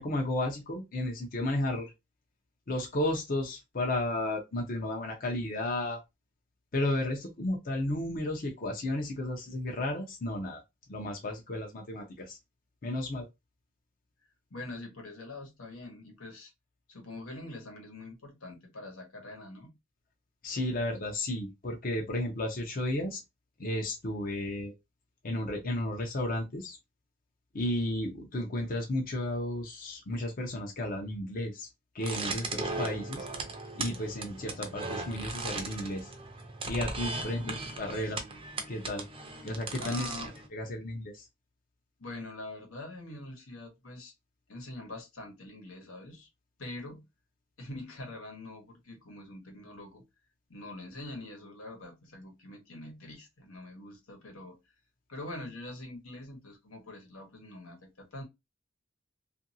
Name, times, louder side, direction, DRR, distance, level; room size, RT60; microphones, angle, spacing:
voice 1, 0.0-1.9 2.7-6.0 6.7-10.6 10.9-12.4 12.8-13.3 20.4-23.2 23.6-24.7 25.2-26.8 27.5-31.7 31.9-33.3 33.7-36.1 36.7-38.2 38.7-39.1 39.4-40.1 40.5-41.3, left 1 dB, 45° left, 0.6 m, -33 dB
voice 2, 14.5-16.5 16.9-19.8 37.3-37.8 38.0-38.4 39.8-40.3 42.0-44.1 44.5-46.3 46.6-47.1 47.6-50.0 50.5-54.6 55.1-58.2, left 2 dB, 90° left, 1.1 m, -44 dB
sound 1, 32.0-40.5, right 3 dB, 25° right, 0.5 m, -38 dB
2.7 x 2.5 x 2.6 m
head